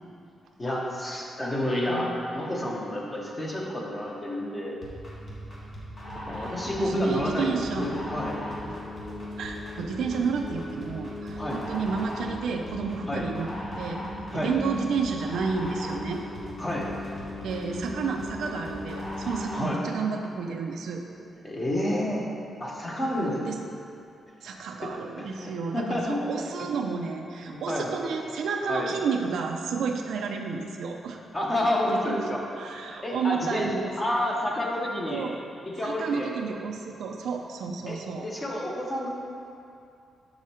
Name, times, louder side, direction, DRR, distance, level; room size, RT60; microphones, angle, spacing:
voice 1, 0.6-4.8 6.2-8.4 11.4-11.6 13.1-13.3 14.3-14.5 16.6-16.9 19.5-19.8 21.4-22.3 22.6-23.5 24.8-24.9 25.2-26.2 27.4-27.9 28.7-28.9 31.3-32.4 33.0-35.3 35.8-36.3 37.9-38.0 38.2-39.1, left 1 dB, 20° left, -2 dB, 0.8 m, -29 dB
sound 1, 4.8-19.8, left 1 dB, 40° left, 1.4 m, -37 dB
voice 2, 6.3-8.0 8.7-8.8 9.4-13.5 13.8-14.0 14.3-16.2 17.4-21.1 23.0-23.6 24.4-31.2 31.9-32.3 32.5-34.3 35.1-35.4 35.8-38.3, right 5 dB, 90° right, 2 dB, 0.4 m, -31 dB
6.2 x 5.0 x 4.3 m, 2.5 s
wide cardioid pair, 165°, 0 cm